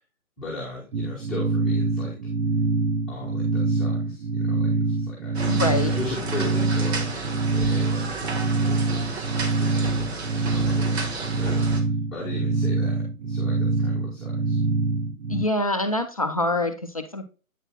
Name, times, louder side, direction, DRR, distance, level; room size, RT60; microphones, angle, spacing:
voice 1, 0.4-2.2 3.1-5.4 5.9-14.6, left 2 dB, ahead, -8 dB, 1.5 m, -38 dB
sound 1, 0.9-15.5, right 3 dB, 80° right, 0.6 m, -25 dB
sound 2, 5.3-11.8, right 3 dB, 45° right, 1.6 m, -33 dB
voice 2, 5.5-5.9 15.3-17.2, left 2 dB, 25° left, 6 dB, 0.5 m, -25 dB
9.0 x 6.2 x 2.3 m, 0.33 s
figure-of-eight pair, 145°, 43 cm